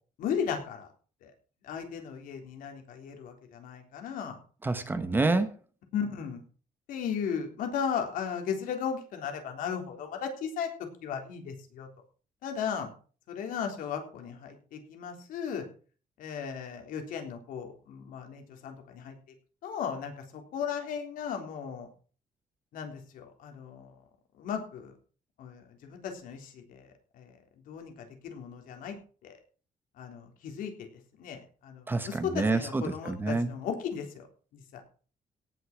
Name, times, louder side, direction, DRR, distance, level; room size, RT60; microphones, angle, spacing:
voice 1, 0.2-0.9 1.2-1.3 1.6-4.4 5.1-5.3 5.9-6.4 6.9-10.7 11.0-11.9 12.4-12.9 13.3-15.6 16.2-19.1 19.6-21.9 22.7-23.9 24.4-24.9 25.4-27.3 27.7-29.0 29.2-29.3 30.0-30.9 31.2-34.2 34.5-34.8, left 7 dB, 85° left, 4 dB, 3.7 m, -36 dB
voice 2, 4.6-5.5 31.9-33.5, right 3 dB, 15° right, 10 dB, 1.0 m, -28 dB
17.5 x 6.7 x 6.1 m, 0.40 s
cardioid pair, 175°, 14 cm